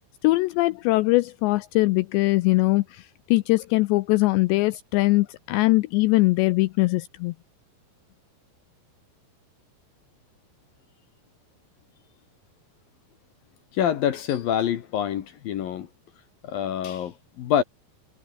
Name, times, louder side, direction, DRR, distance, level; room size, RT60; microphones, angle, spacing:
voice 1, 0.2-7.3, left 21 dB, 90° left, 2.5 m, -21 dB
voice 2, 13.7-15.9 16.5-17.6, left 10 dB, 65° left, 2.5 m, -26 dB
omnidirectional pair, 5.6 m